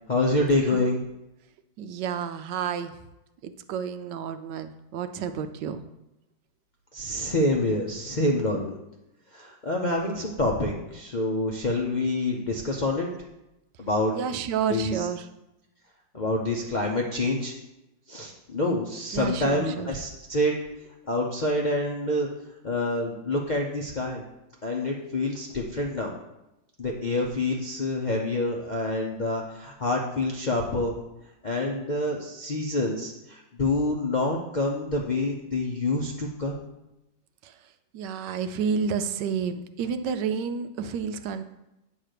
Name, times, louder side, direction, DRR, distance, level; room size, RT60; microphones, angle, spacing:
voice 1, 0.1-1.0 6.9-8.8 9.3-13.1 13.8-14.1 14.7-15.1 16.1-17.5 18.1-20.6 21.1-22.3 22.6-24.2 24.6-26.1 26.8-31.0 31.4-36.6, left 2 dB, 50° left, -1 dB, 0.5 m, -27 dB
voice 2, 1.8-2.9 3.4-5.8 14.1-15.2 19.1-19.9 37.4-37.5 37.9-41.4, right 6 dB, 75° right, 10 dB, 1.2 m, -30 dB
9.0 x 3.3 x 6.5 m, 0.92 s
omnidirectional pair, 1.9 m